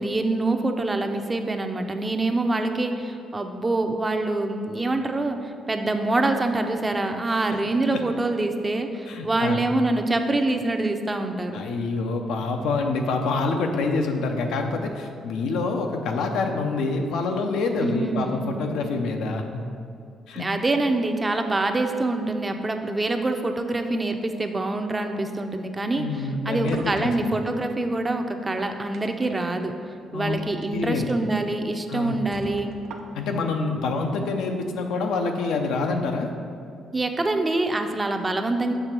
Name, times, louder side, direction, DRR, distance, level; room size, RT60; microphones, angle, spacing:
voice 1, 0.0-11.6 17.8-18.9 20.4-29.7 30.1-32.7 36.9-38.7, right 2 dB, 20° right, 6 dB, 0.5 m, -25 dB
voice 2, 9.1-9.6 11.5-19.6 20.3-20.5 26.0-27.3 30.1-30.4 30.7-31.1 31.9-32.2 33.1-36.3, left 3 dB, 85° left, 4 dB, 0.6 m, -26 dB
sound 1, 26.1-27.8 28.4-29.5 30.5-30.7 31.1-31.2 31.7-31.8 32.3-33.4, right 3 dB, 80° right, 0.5 m, -43 dB
6.9 x 3.3 x 5.9 m, 2.5 s
cardioid pair, 90°, 0 cm